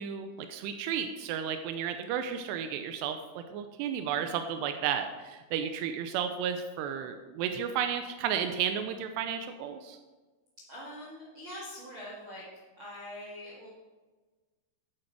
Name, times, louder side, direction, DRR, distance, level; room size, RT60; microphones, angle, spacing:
voice 1, 0.0-10.0, right 8 dB, 90° right, 7 dB, 2.4 m, -33 dB
voice 2, 10.7-12.4 12.8-13.7, left 1 dB, 55° right, -5 dB, 1.4 m, -43 dB
10.5 x 8.6 x 4.6 m, 1.3 s
omnidirectional pair, 5.4 m